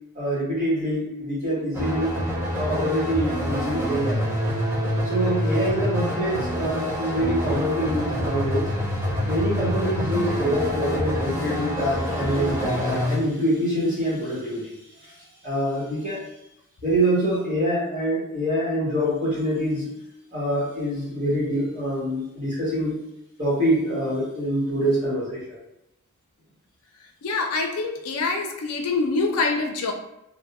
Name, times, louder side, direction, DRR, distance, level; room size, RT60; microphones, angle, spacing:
voice 1, 0.1-2.1 2.5-4.2 5.0-8.7 9.2-14.7 15.4-16.2 16.8-19.9 20.3-22.9 23.4-25.6, equal, 35° right, -7 dB, 1.2 m, -25 dB
sound 1, 1.7-13.2, equal, 10° right, 1.0 m, -26 dB
voice 2, 27.2-29.9, left 3 dB, 85° left, 4 dB, 0.4 m, -25 dB
2.5 x 2.1 x 2.9 m, 0.85 s
head